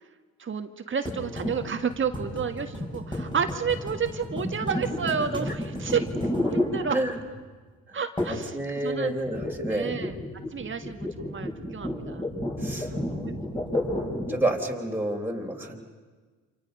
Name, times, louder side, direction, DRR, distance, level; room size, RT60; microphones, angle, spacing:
voice 1, 0.4-6.1 6.5-7.0 7.9-8.6 8.8-9.1 9.7-10.2 10.5-12.2 12.8-13.6, right 6 dB, 40° right, 6 dB, 1.6 m, -31 dB
sound 1, 1.1-7.4 8.2-8.5 8.8-14.5, left 1 dB, 15° left, 5.6 m, -32 dB
voice 2, 8.3-9.9 12.6-12.9 14.3-15.8, right 1 dB, 5° right, -1 dB, 3.6 m, -29 dB
28.5 x 27.0 x 5.4 m, 1.4 s
cardioid pair, 90°, 30 cm